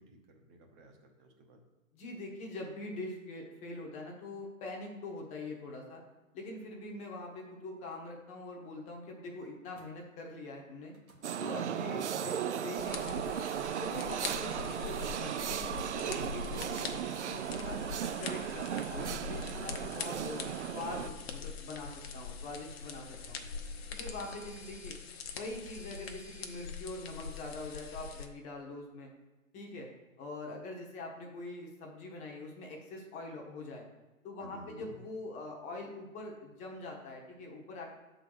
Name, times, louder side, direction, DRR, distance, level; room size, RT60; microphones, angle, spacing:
voice 1, 0.0-1.6 34.4-35.0, right 1 dB, 25° right, 3 dB, 0.9 m, -53 dB
voice 2, 1.9-6.0 6.3-10.9 11.4-13.4 13.8-17.8 18.2-23.4 23.9-25.0 25.3-29.1 29.5-29.9 30.2-33.8 34.2-37.9, left 2 dB, 15° left, 1 dB, 0.9 m, -43 dB
sound 1, 9.7-9.9 10.9-11.3 12.2-12.9 13.3-14.1 15.7-26.7, right 3 dB, 85° right, 1.7 m, -60 dB
sound 2, 11.2-21.1, right 9 dB, 55° right, 0.5 m, -36 dB
sound 3, 12.8-28.3, left 5 dB, 45° left, 0.8 m, -43 dB
6.7 x 3.9 x 6.4 m, 1.1 s
figure-of-eight pair, 125°, 42 cm